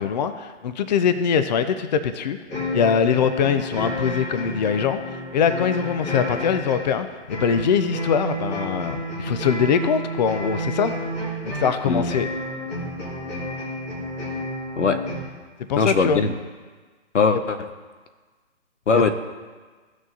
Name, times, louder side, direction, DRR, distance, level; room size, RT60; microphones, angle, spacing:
voice 1, 0.0-2.4 2.7-10.9 11.4-12.3 15.7-16.2 18.9-19.1, left 7 dB, 40° left, 10 dB, 0.5 m, -22 dB
sound 1, 2.5-15.2, equal, 20° left, 2.1 m, -30 dB
voice 2, 15.8-16.3 17.1-17.7 18.9-19.1, left 4 dB, 85° left, 9 dB, 0.9 m, -20 dB
16.0 x 6.3 x 2.7 m, 1.4 s
hypercardioid pair, 140°, 35 cm